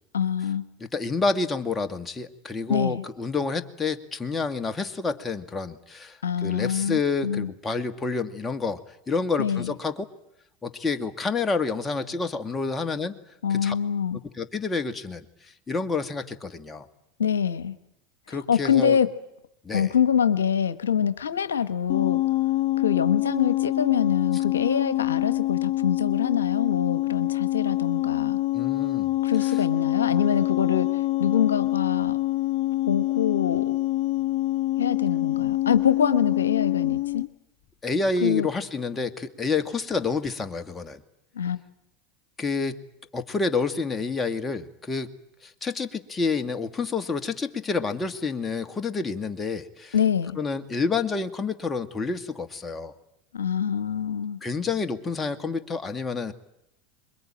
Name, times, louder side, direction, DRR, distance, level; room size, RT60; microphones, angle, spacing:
voice 1, 0.1-0.6 2.7-3.0 6.2-7.5 9.4-9.7 13.4-14.2 17.2-17.7 18.3-19.1 19.7-22.2 22.8-28.4 29.2-32.2 32.9-33.7 34.8-37.2 38.2-38.5 41.3-41.6 49.9-50.4 53.3-54.4, left 8 dB, 85° left, 13 dB, 1.1 m, -25 dB
voice 2, 0.9-8.8 9.1-10.1 10.6-13.2 13.5-13.7 14.3-16.9 18.3-19.0 19.6-19.9 28.5-29.1 37.8-41.0 42.4-42.8 43.1-45.1 45.4-50.0 50.4-52.9 54.4-56.3, left 4 dB, 20° left, 8 dB, 2.0 m, -28 dB
sound 1, 21.9-37.3, left 17 dB, 50° left, 1.0 m, -25 dB
26.5 x 22.0 x 8.9 m, 0.82 s
hypercardioid pair, 85°, 0 cm